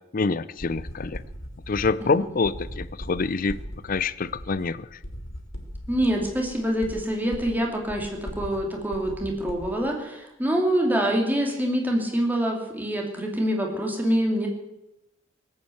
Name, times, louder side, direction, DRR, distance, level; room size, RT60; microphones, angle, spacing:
voice 1, 0.1-1.2 1.7-3.6 3.8-5.0, left 4 dB, 45° left, 17 dB, 0.5 m, -26 dB
sound 1, 0.6-9.8, equal, 85° left, 3.0 m, -39 dB
voice 2, 5.9-14.5, equal, 10° right, 1 dB, 2.7 m, -25 dB
19.0 x 8.7 x 7.8 m, 0.91 s
head